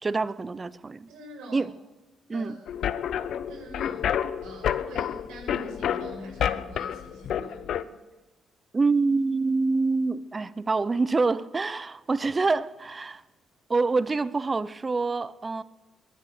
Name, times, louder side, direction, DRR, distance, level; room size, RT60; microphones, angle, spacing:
voice 1, 0.0-1.1 1.5-1.7 2.3-2.6 8.7-13.2 13.7-15.6, right 3 dB, 30° right, 0.6 m, -26 dB
voice 2, 1.1-1.7 2.3-2.5 3.5-4.0 4.4-7.9, right 1 dB, 85° right, 6.1 m, -44 dB
sound 1, 2.7-7.8, left 9 dB, 70° left, 0.7 m, -29 dB
22.0 x 9.8 x 6.6 m
cardioid pair, 90°, 0 cm